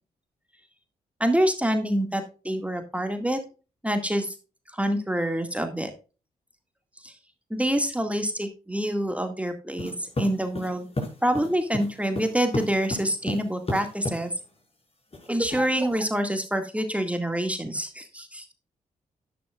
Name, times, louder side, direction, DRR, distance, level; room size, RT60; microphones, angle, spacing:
voice 1, 1.2-3.4 3.8-4.3 4.7-5.9 7.0-7.1 7.5-10.9 11.2-14.3 15.3-18.5, right 1 dB, 10° right, 6 dB, 2.0 m, -26 dB
sound 1, 9.8-14.2 15.1-15.9, left 1 dB, 35° left, 5.4 m, -32 dB
11.0 x 9.6 x 2.4 m, 0.33 s
hypercardioid pair, 40°, 17 cm